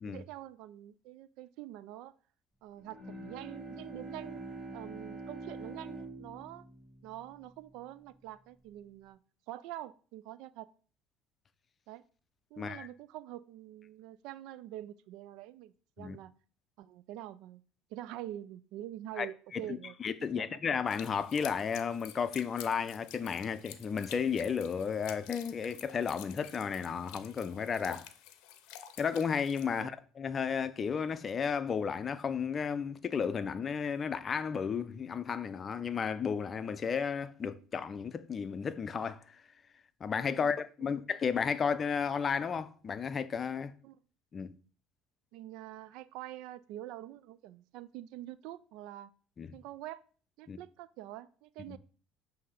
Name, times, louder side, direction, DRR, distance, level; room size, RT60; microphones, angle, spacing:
voice 1, 0.0-2.1 2.6-4.4 4.7-6.7 7.0-9.2 9.5-10.7 11.9-12.0 12.5-16.3 16.8-17.6 17.9-19.9 20.3-20.6 29.7-29.9 40.3-40.6 40.8-40.9 43.8-44.0 45.3-49.1 49.5-50.0 50.4-51.8, right 13 dB, 75° right, 0.3 m, -45 dB
Bowed string instrument, 2.8-8.2, right 2 dB, 35° right, 2.3 m, -45 dB
voice 2, 12.6-12.9 16.0-16.2 19.2-19.3 19.5-19.6 20.0-28.1 29.0-39.2 40.0-43.7 44.3-44.5 49.4-49.5 50.5-50.6 51.7-51.8, left 6 dB, 35° left, 0.5 m, -33 dB
sound 1, 20.9-29.8, left 11 dB, 80° left, 0.6 m, -50 dB
7.6 x 2.8 x 4.9 m
supercardioid pair, 105°, 0 cm